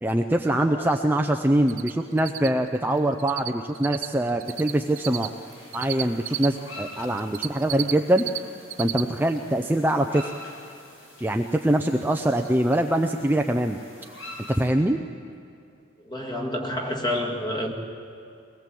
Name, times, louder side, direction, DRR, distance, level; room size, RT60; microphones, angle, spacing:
voice 1, 0.0-5.3 5.7-8.3 8.8-10.3 11.2-13.8 14.5-15.0, right 1 dB, 10° right, 4 dB, 0.5 m, -23 dB
voice 2, 0.6-0.9 16.0-17.7, left 1 dB, 20° left, 3 dB, 2.0 m, -29 dB
Cricket, 1.7-1.9 2.2-3.5 3.7-6.5 7.0-8.4 8.6-9.0 9.4-9.5 12.0-12.1 12.4-12.5 12.7-12.8, right 14 dB, 70° right, 0.8 m, -31 dB
sound 1, 4.4-14.7, left 2 dB, 75° left, 5.5 m, -46 dB
23.0 x 20.0 x 7.7 m, 2.4 s
head